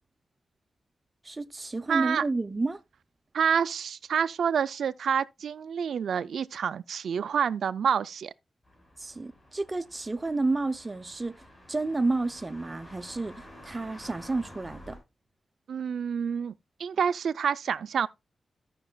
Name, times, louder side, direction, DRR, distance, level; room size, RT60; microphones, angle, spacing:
voice 1, 1.2-2.8 9.0-11.3 11.7-15.0, right 3 dB, 20° right, 0.5 m, -30 dB
voice 2, 1.9-2.2 3.3-8.3 15.7-16.5 16.8-18.1, right 7 dB, 80° right, 0.3 m, -28 dB
sound 1, 8.6-15.0, left 1 dB, 25° left, 5.6 m, -50 dB
15.0 x 5.9 x 2.2 m
wide cardioid pair, 180°, 0 cm